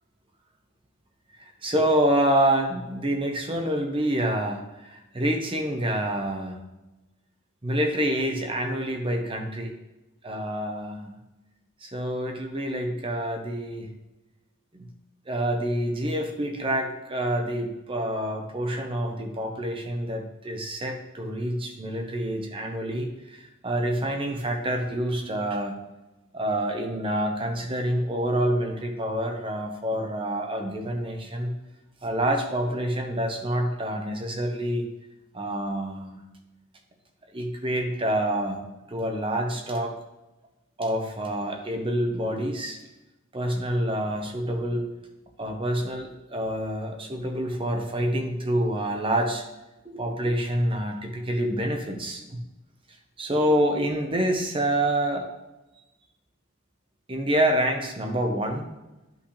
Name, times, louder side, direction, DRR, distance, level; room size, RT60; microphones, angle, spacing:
voice 1, 1.4-6.6 7.6-9.8 10.2-11.1 11.8-13.9 14.7-14.9 15.3-25.8 26.3-31.5 32.0-34.9 35.3-36.2 37.3-39.9 40.8-42.8 43.3-44.9 45.4-49.4 49.8-52.4 53.2-55.3 57.1-58.7, right 1 dB, 25° right, 3 dB, 1.0 m, -27 dB
11.0 x 5.8 x 3.3 m, 1.0 s
head